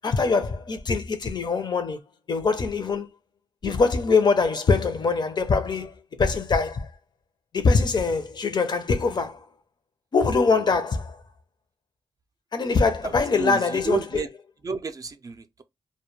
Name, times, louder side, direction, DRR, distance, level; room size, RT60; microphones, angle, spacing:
voice 1, 0.0-2.0 2.3-3.1 3.6-5.9 6.2-6.9 7.5-9.4 10.1-11.2 12.5-14.0, left 4 dB, 50° left, 0.5 m, -23 dB
voice 2, 13.0-14.3 14.6-15.6, right 4 dB, 40° right, 0.4 m, -30 dB
2.1 x 2.1 x 3.1 m
cardioid pair, 65°, 10 cm